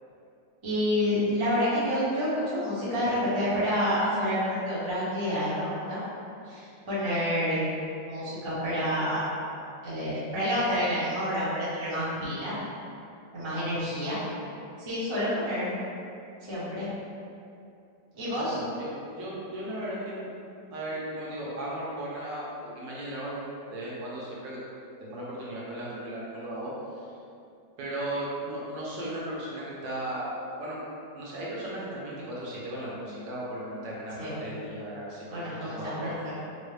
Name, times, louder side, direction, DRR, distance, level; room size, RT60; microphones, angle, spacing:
voice 1, 0.6-6.0 6.5-7.6 8.0-9.2 9.8-12.6 13.3-14.2 14.8-15.8 16.4-16.9 18.2-18.6 34.2-34.4 35.3-36.4, equal, 20° right, -11 dB, 0.8 m, -28 dB
voice 2, 18.1-20.3 20.7-23.4 23.7-24.6 25.0-26.7 27.0-27.1 27.8-30.3 30.6-30.8 31.1-36.1, right 1 dB, 75° right, -6 dB, 1.4 m, -36 dB
4.5 x 2.1 x 3.2 m, 2.6 s
omnidirectional pair, 2.0 m